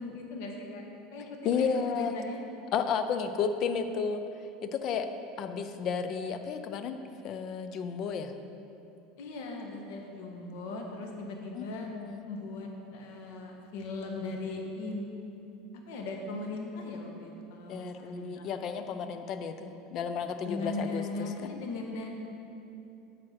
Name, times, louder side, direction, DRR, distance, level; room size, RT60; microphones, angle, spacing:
voice 1, 0.0-2.4 9.2-11.9 12.3-15.1 15.9-18.6 20.4-22.1, left 2 dB, 75° left, 1 dB, 1.5 m, -39 dB
voice 2, 1.4-2.2 2.7-4.2 4.6-5.1 5.4-7.0 7.2-8.3 11.5-12.2 17.7-21.6, left 6 dB, 45° left, 9 dB, 0.6 m, -32 dB
7.7 x 7.5 x 5.9 m, 2.8 s
supercardioid pair, 140°, 0 cm